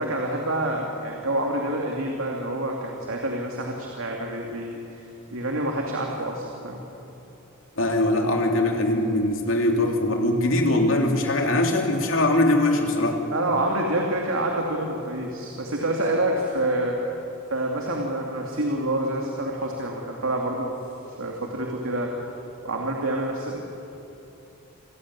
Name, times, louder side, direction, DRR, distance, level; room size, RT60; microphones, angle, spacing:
voice 1, 0.0-6.8 13.3-17.0 17.5-20.7 21.2-22.1 22.6-23.6, right 1 dB, 75° right, 0 dB, 2.6 m, -27 dB
voice 2, 7.8-13.2, left 1 dB, 65° left, 2 dB, 3.1 m, -22 dB
28.0 x 16.0 x 9.7 m, 2.9 s
head